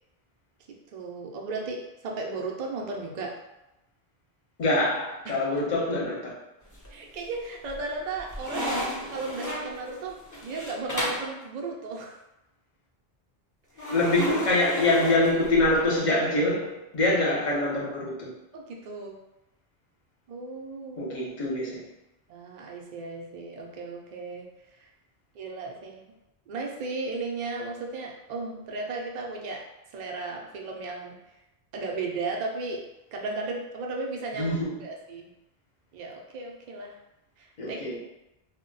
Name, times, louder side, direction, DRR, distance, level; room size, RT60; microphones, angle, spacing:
voice 1, 0.7-3.3 5.3-5.4 6.9-8.8 9.1-12.1 13.7-14.0 17.1-17.3 18.5-19.2 20.3-21.2 22.3-24.5 24.7-24.9 25.3-26.1 26.5-31.2 31.7-32.8 33.1-35.3 35.9-37.0 37.4-38.0, right 3 dB, 55° right, 0 dB, 0.5 m, -35 dB
voice 2, 4.6-6.3 13.9-18.3 21.0-21.8 34.4-34.7 37.6-37.9, left 2 dB, 50° left, -5 dB, 0.8 m, -25 dB
sound 1, 6.7-7.2 7.7-11.3 13.8-15.8, equal, 25° left, 0.5 m, -34 dB
2.1 x 2.1 x 3.8 m, 0.93 s
omnidirectional pair, 1.0 m